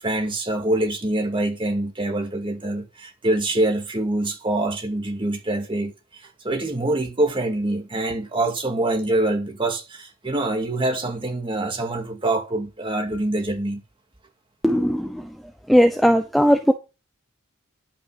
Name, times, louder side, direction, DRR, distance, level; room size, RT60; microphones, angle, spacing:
voice 1, 0.0-13.8, right 2 dB, 25° right, 2.1 m, -25 dB
voice 2, 14.6-15.3 15.7-16.7, equal, ahead, 0.7 m, -18 dB
11.0 x 5.8 x 6.5 m
head